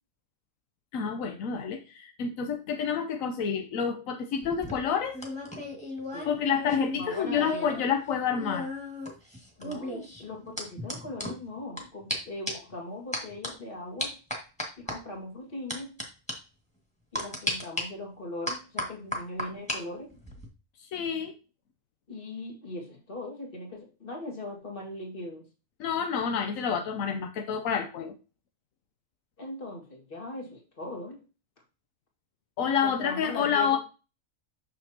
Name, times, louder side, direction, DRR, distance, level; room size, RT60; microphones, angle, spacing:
voice 1, 0.9-5.2 6.2-8.7 20.9-21.3 25.8-28.1 32.6-33.8, left 7 dB, 85° left, 6 dB, 1.1 m, -28 dB
sound 1, 4.4-7.8 8.1-11.8 12.1-12.2 12.5-12.7 13.1-13.5 14.0-15.0 15.7-16.0 16.3-16.4 17.1-17.8 18.5-19.8 20.1-20.5, left 1 dB, 5° left, 1.7 m, -35 dB
voice 2, 6.9-7.7 9.6-14.2 14.8-15.9 17.1-20.1 22.1-25.4 29.4-31.2 32.8-33.8, left 2 dB, 40° left, 0 dB, 2.1 m, -39 dB
6.6 x 6.4 x 2.8 m, 0.32 s
omnidirectional pair, 1.4 m